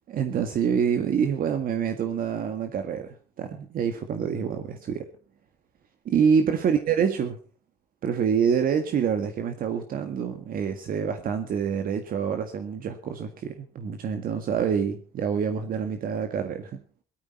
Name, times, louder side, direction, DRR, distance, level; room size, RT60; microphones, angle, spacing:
voice 1, 0.1-5.1 6.1-7.4 8.0-16.8, right 7 dB, 60° right, 7 dB, 1.8 m, -26 dB
17.5 x 14.0 x 4.4 m, 0.39 s
cardioid pair, 110°, 17 cm